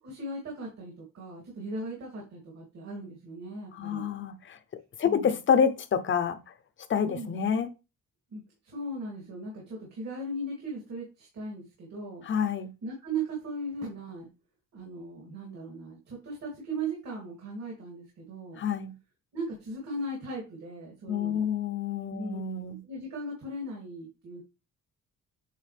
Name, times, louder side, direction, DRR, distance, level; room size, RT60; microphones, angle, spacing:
voice 1, 0.0-4.1 5.0-5.4 7.1-7.4 8.3-12.2 12.8-14.3 14.7-18.6 19.3-21.5 22.1-22.4 22.7-24.4, right 2 dB, 60° right, 3.0 m, -38 dB
voice 2, 3.8-4.6 5.0-6.4 6.9-7.7 12.3-12.7 18.6-18.9 21.1-22.8, left 7 dB, 40° left, 0.8 m, -27 dB
9.4 x 4.1 x 3.4 m
cardioid pair, 165°, 31 cm